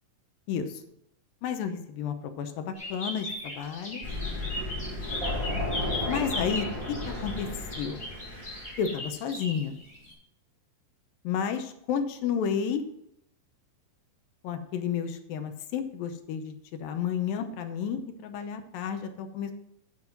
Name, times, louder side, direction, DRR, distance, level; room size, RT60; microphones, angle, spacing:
voice 1, 0.5-0.8 1.4-4.1 6.1-6.7 7.1-7.5 7.8-8.0 8.8-9.8 11.2-12.8 14.4-19.5, left 7 dB, 80° left, 8 dB, 2.6 m, -31 dB
sound 1, 2.7-10.1, left 1 dB, 20° left, 3.6 m, -38 dB
Thunder, 4.0-8.8, left 1 dB, 5° right, 4.3 m, -33 dB
8.0 x 7.3 x 5.9 m, 0.75 s
omnidirectional pair, 4.1 m